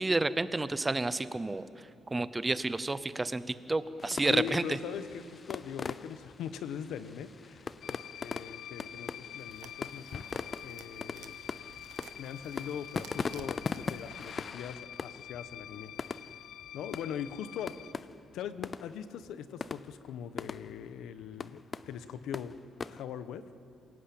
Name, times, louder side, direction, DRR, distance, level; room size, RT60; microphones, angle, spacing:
voice 1, 0.0-4.8, right 2 dB, 15° right, 14 dB, 0.7 m, -30 dB
sound 1, 4.0-23.0, left 5 dB, 25° left, 0.5 m, -41 dB
voice 2, 4.3-11.4 12.2-15.9 16.7-17.8 18.3-22.6 22.9-23.5, left 8 dB, 85° left, 12 dB, 1.2 m, -41 dB
sound 2, 7.8-17.9, left 11 dB, 60° left, 0.7 m, -47 dB
sound 3, 9.4-14.5, right 9 dB, 85° right, 1.2 m, -54 dB
27.0 x 18.0 x 8.7 m, 2.7 s
cardioid pair, 170°, 0 cm